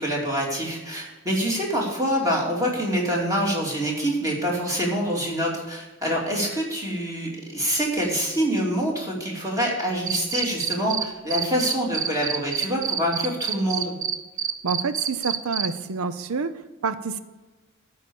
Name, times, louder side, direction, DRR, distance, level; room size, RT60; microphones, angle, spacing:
voice 1, 0.0-14.0, equal, 15° right, -2 dB, 2.6 m, -26 dB
Cricket, 10.1-11.0 11.3-15.7, right 8 dB, 40° right, 0.7 m, -26 dB
voice 2, 14.6-17.2, right 4 dB, 80° right, 12 dB, 0.6 m, -28 dB
12.5 x 4.8 x 8.5 m, 1.2 s
head